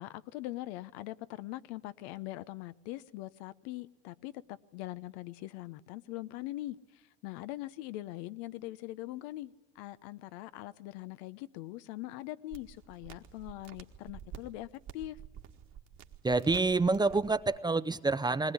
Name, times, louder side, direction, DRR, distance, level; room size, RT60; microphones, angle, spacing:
voice 1, 0.0-6.8 7.2-15.2, left 16 dB, 70° left, 0.8 m, -42 dB
sound 1, 12.5-17.6, right 9 dB, 50° right, 1.8 m, -49 dB
voice 2, 16.2-18.5, right 3 dB, 10° right, 0.6 m, -27 dB
20.5 x 19.0 x 9.6 m
hypercardioid pair, 90°, 34 cm